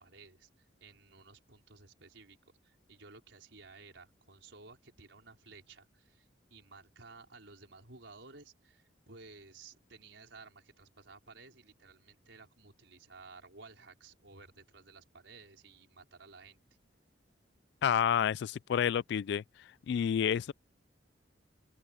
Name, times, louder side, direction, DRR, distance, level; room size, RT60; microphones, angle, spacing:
voice 1, 0.0-2.4 2.6-16.6, right 4 dB, 80° right, 4.9 m, -55 dB
voice 2, 17.8-19.4 19.9-20.5, left 8 dB, 65° left, 0.3 m, -29 dB
open air
head